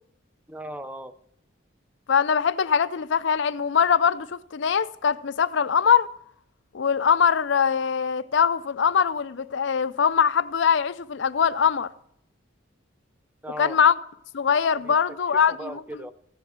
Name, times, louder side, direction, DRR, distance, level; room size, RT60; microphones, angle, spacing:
voice 1, 0.5-1.1 13.4-13.8 14.8-15.2 15.5-16.1, right 1 dB, 5° right, 0.5 m, -37 dB
voice 2, 2.1-6.1 6.7-11.9 13.6-13.9 14.3-15.8, left 7 dB, 60° left, 0.4 m, -22 dB
15.0 x 7.9 x 4.8 m
head